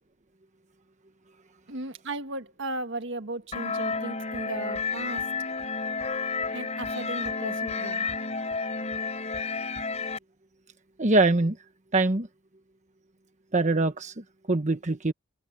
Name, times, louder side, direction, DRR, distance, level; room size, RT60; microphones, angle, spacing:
voice 1, 1.7-5.3 6.5-8.1, right 2 dB, 65° right, 1.6 m, -36 dB
sound 1, 3.5-10.2, left 4 dB, 35° left, 4.0 m, -31 dB
voice 2, 11.0-11.6 11.9-12.3 13.5-15.1, right 2 dB, 35° right, 1.2 m, -23 dB
head